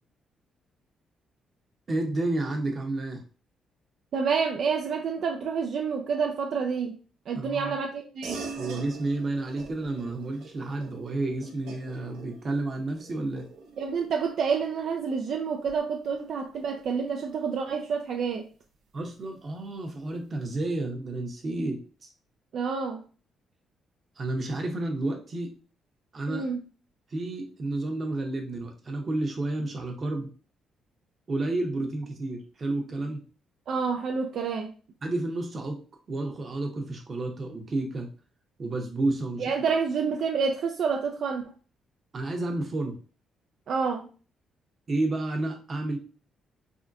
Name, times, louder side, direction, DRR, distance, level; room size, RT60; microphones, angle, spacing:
voice 1, 1.9-3.2 7.3-7.7 8.6-13.5 18.9-21.8 24.2-25.5 26.1-26.5 27.1-30.3 31.3-33.2 35.0-35.8 36.1-38.1 38.6-39.5 42.1-43.0 44.9-46.0, right 2 dB, 40° right, 0.8 m, -31 dB
voice 2, 4.1-7.0 7.3-8.4 13.8-18.5 22.5-23.0 26.3-26.6 33.7-34.7 39.4-41.5 43.7-44.1, right 5 dB, 65° right, 0.3 m, -28 dB
sound 1, 8.2-18.1, right 4 dB, 90° right, 0.7 m, -45 dB
3.6 x 2.2 x 2.6 m
cardioid pair, 90°, 0 cm